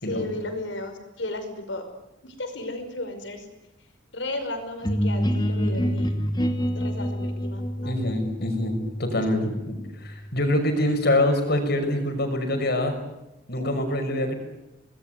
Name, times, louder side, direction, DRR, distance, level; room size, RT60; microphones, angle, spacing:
voice 1, 0.1-1.8 2.2-3.5 4.1-6.1 6.7-8.2, left 2 dB, 75° left, 7 dB, 5.6 m, -34 dB
sound 1, 4.8-10.5, equal, 20° left, 2.3 m, -27 dB
voice 2, 7.8-12.9 13.5-14.4, left 1 dB, 60° left, 6 dB, 6.1 m, -25 dB
26.0 x 20.5 x 9.5 m, 0.94 s
head